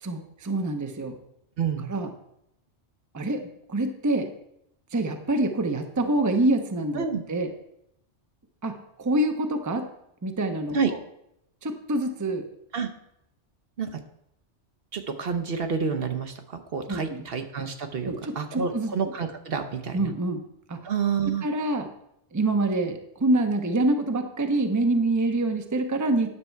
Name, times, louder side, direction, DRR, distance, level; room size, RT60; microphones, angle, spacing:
voice 1, 0.0-1.2 1.9-2.1 3.1-4.3 4.9-7.5 8.6-9.9 10.2-11.0 11.6-12.4 16.9-17.2 18.0-18.9 19.9-20.4 20.7-20.8 21.4-21.9 22.3-26.4, right 2 dB, 20° right, 6 dB, 0.7 m, -26 dB
voice 2, 1.6-1.9 6.9-7.2 10.7-10.9 12.7-12.9 13.8-14.0 14.9-20.1 20.8-21.5, right 6 dB, 60° right, 6 dB, 1.0 m, -29 dB
10.0 x 6.7 x 4.5 m, 0.78 s
omnidirectional pair, 1.2 m